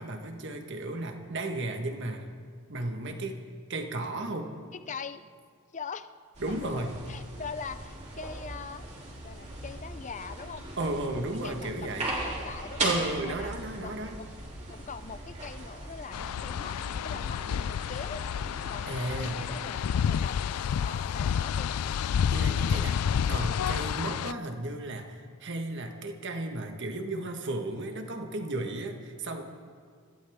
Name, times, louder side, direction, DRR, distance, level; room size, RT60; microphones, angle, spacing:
voice 1, 0.0-2.3 2.7-3.4 3.7-4.5 6.4-7.0 10.8-12.1 12.8-14.2 18.9-19.5 22.3-23.0 23.3-29.4, right 2 dB, 55° right, 4 dB, 1.6 m, -34 dB
voice 2, 4.7-5.2 5.7-6.1 6.5-8.8 9.2-10.7 11.4-12.9 13.2-13.6 13.8-14.3 14.7-18.2 18.7-20.4 20.8-22.0, left 5 dB, 35° left, 12 dB, 0.5 m, -42 dB
sound 1, 6.3-19.7, right 2 dB, 30° right, 3.2 m, -39 dB
sound 2, 16.1-24.3, left 8 dB, 85° left, 0.4 m, -29 dB
26.0 x 15.5 x 3.7 m, 2.1 s
head